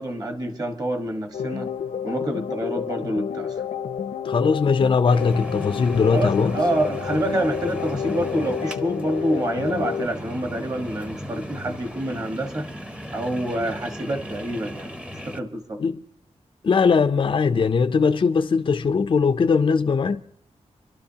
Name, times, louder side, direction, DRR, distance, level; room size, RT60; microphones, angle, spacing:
voice 1, 0.0-1.7 2.0-3.5 6.1-12.7 13.1-14.9 15.3-15.8, right 1 dB, 30° right, 1.4 m, -27 dB
sound 1, 1.3-10.1, left 8 dB, 85° left, 0.7 m, -30 dB
voice 2, 4.2-6.5 15.8-16.0 16.6-20.2, left 5 dB, 45° left, 0.5 m, -20 dB
sound 2, 5.1-15.4, equal, 10° right, 0.8 m, -36 dB
26.0 x 12.0 x 2.8 m
wide cardioid pair, 130°, 12 cm